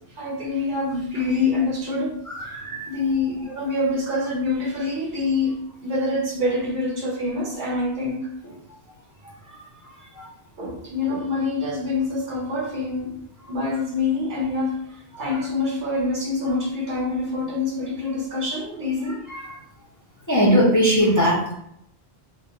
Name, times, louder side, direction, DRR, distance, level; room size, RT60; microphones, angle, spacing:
voice 1, 0.0-8.3 10.6-13.2 13.5-14.9 15.2-19.2, left 3 dB, 60° right, -2 dB, 0.7 m, -26 dB
voice 2, 2.4-2.9 10.2-10.3 20.3-21.5, equal, 25° left, -6 dB, 0.4 m, -19 dB
2.2 x 2.1 x 3.7 m, 0.74 s
omnidirectional pair, 1.0 m